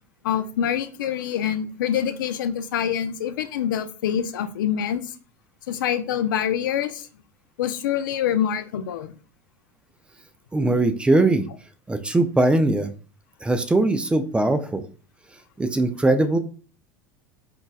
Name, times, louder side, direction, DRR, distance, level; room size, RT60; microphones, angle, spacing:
voice 1, 0.2-5.1 5.7-7.1 7.6-9.1, left 9 dB, 85° left, 10 dB, 0.4 m, -25 dB
voice 2, 10.5-11.4 11.9-12.9 13.4-14.8 15.6-16.4, right 2 dB, 10° right, 8 dB, 0.3 m, -20 dB
4.1 x 2.1 x 2.3 m, 0.39 s
supercardioid pair, 100°, 11 cm